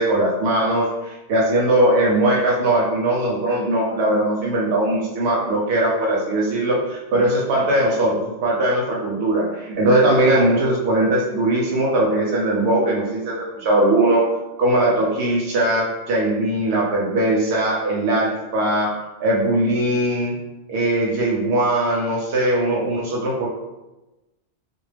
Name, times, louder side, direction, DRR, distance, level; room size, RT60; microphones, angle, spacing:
voice 1, 0.0-14.2 14.6-18.9 19.2-20.3 20.7-23.5, right 1 dB, 85° right, -3 dB, 0.9 m, -20 dB
2.2 x 2.0 x 3.2 m, 1.0 s
omnidirectional pair, 1.1 m